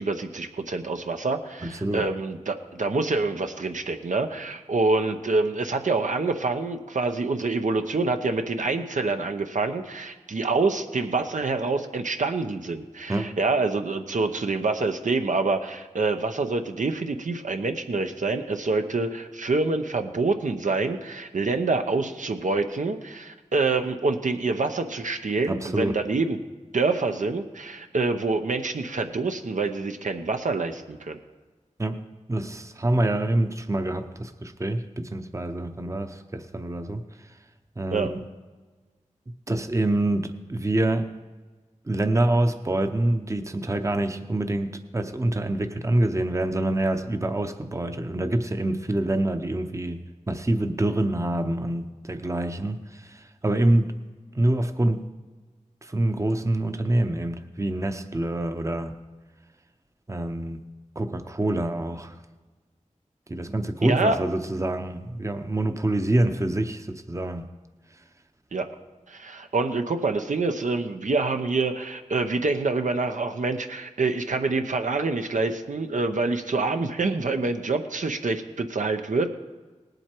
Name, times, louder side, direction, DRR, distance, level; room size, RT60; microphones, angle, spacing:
voice 1, 0.0-26.4 26.7-31.2 37.9-38.1 63.8-64.2 68.5-68.7 69.1-79.3, right 3 dB, 80° right, 6 dB, 0.8 m, -26 dB
voice 2, 1.6-2.0 13.1-13.3 25.4-26.0 31.8-32.0 32.3-37.0 37.8-38.2 39.3-41.1 41.9-50.0 50.3-53.9 54.3-55.1 55.8-58.9 60.1-60.6 61.0-62.1 63.3-67.4, right 1 dB, 25° right, 7 dB, 0.7 m, -26 dB
18.5 x 7.9 x 4.5 m, 1.3 s
wide cardioid pair, 70°, 13 cm